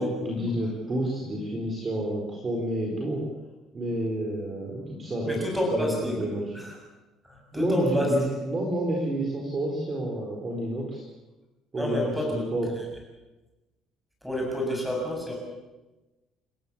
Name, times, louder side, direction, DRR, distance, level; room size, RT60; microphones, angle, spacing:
voice 1, 0.0-3.2 3.7-5.4 5.7-6.4 7.5-11.0 11.7-12.7, right 1 dB, 20° right, -1 dB, 4.3 m, -29 dB
voice 2, 5.3-6.3 6.5-6.7 7.2-8.2 11.7-12.5 14.2-15.3, left 1 dB, ahead, 0 dB, 7.3 m, -29 dB
28.0 x 15.5 x 8.6 m, 1.1 s
cardioid pair, 175°, 0 cm